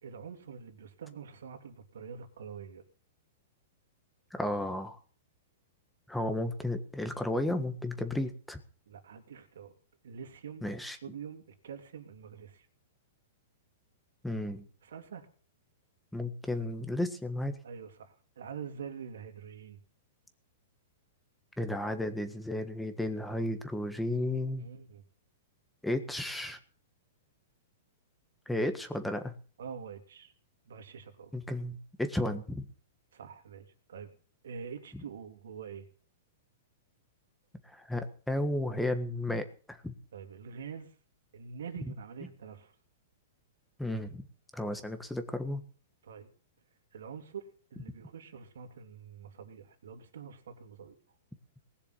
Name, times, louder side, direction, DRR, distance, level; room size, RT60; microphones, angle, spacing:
voice 1, 0.0-2.8 8.9-9.7 10.0-12.7 14.8-15.3 17.6-19.8 24.6-25.0 29.6-30.3 30.7-31.3 33.1-34.1 34.4-35.9 40.1-40.9 41.3-42.7 46.0-46.3 46.9-50.9, right 6 dB, 85° right, 5 dB, 3.3 m, -45 dB
voice 2, 4.3-5.0 6.1-8.6 10.6-11.0 14.2-14.6 16.1-17.6 21.6-24.7 25.8-26.6 28.5-29.3 31.3-32.7 37.6-39.9 43.8-44.2 44.5-45.6, left 1 dB, 5° left, 8 dB, 1.5 m, -33 dB
19.5 x 7.1 x 8.4 m, 0.41 s
hypercardioid pair, 155°, 0 cm